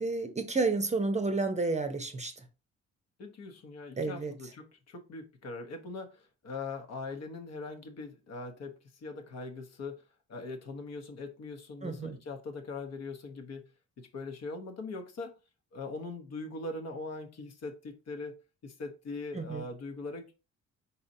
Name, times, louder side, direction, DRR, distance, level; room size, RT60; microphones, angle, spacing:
voice 1, 0.0-2.3 4.0-4.3 11.8-12.2 19.3-19.6, right 3 dB, 25° right, 0.7 m, -30 dB
voice 2, 3.2-8.7 9.0-10.0 10.3-13.7 14.0-15.3 15.7-18.3 18.6-20.3, left 3 dB, 60° left, 1.0 m, -41 dB
4.2 x 3.9 x 2.7 m
cardioid pair, 90°, 30 cm